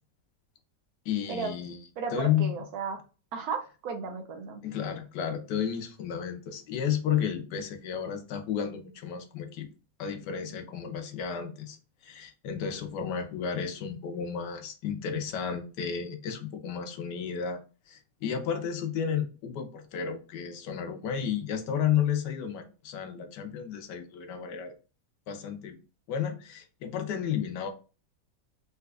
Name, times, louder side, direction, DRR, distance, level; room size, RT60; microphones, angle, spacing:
voice 1, 1.1-1.8 2.1-2.5 4.6-9.7 10.0-11.8 12.0-17.6 17.9-24.7 25.3-25.8 26.1-27.7, left 8 dB, 75° left, 1.2 m, -32 dB
voice 2, 2.0-3.0 3.3-4.6, right 5 dB, 70° right, 1.0 m, -34 dB
4.1 x 2.4 x 2.3 m
omnidirectional pair, 1.9 m